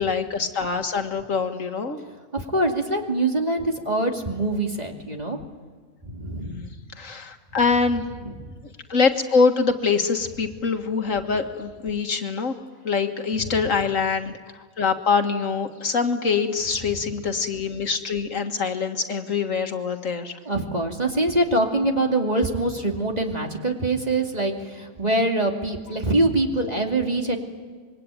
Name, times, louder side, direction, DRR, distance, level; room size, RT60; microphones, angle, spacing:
voice 1, 0.0-2.0 6.4-6.7 7.0-8.0 8.9-12.5 12.8-14.4 14.8-20.4, left 5 dB, 70° left, 6 dB, 2.0 m, -24 dB
voice 2, 2.3-5.4 6.0-6.7 8.2-8.5 13.4-13.5 20.5-27.4, right 2 dB, 30° right, 2 dB, 2.6 m, -24 dB
26.0 x 23.0 x 9.1 m, 1.5 s
omnidirectional pair, 1.4 m